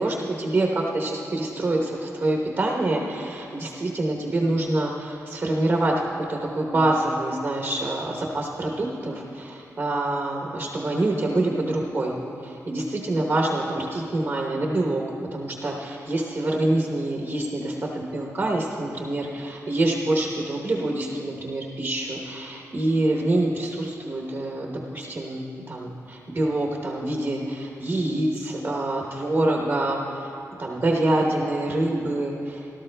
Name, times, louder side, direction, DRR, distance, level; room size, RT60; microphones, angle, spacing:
voice 1, 0.0-6.0 6.3-12.2 12.4-15.1 15.3-30.3 30.6-32.7, right 2 dB, 30° right, -1 dB, 0.9 m, -26 dB
18.0 x 13.0 x 2.2 m, 2.7 s
wide cardioid pair, 150°, 6 cm